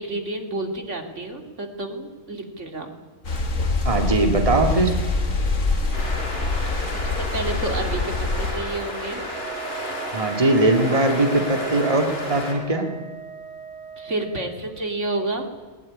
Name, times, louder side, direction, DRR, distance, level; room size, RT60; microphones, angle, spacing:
voice 1, 0.0-2.9 7.0-9.2 14.0-15.5, right 2 dB, 70° right, 5 dB, 2.9 m, -30 dB
Shore Loch Tay, 3.2-8.5, left 3 dB, 80° left, 2.4 m, -24 dB
voice 2, 3.8-5.0 10.1-12.9, right 2 dB, 25° right, 4 dB, 2.2 m, -20 dB
sound 1, 5.9-12.5, left 1 dB, 50° left, 4.8 m, -32 dB
Wind instrument woodwind instrument, 9.3-14.6, right 9 dB, 55° right, 7.8 m, -38 dB
20.0 x 20.0 x 9.9 m, 1.3 s
omnidirectional pair, 1.3 m